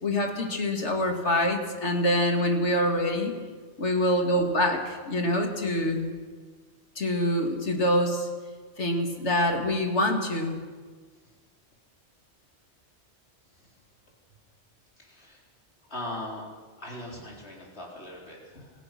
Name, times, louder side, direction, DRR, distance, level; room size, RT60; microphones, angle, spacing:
voice 1, 0.0-3.3 3.8-6.2 7.0-8.3 8.8-10.6, left 1 dB, 90° left, 3 dB, 2.8 m, -25 dB
voice 2, 15.0-15.4 15.9-16.5 16.8-18.7, left 1 dB, 70° left, -2 dB, 4.6 m, -40 dB
26.0 x 17.0 x 6.2 m, 1.5 s
omnidirectional pair, 1.1 m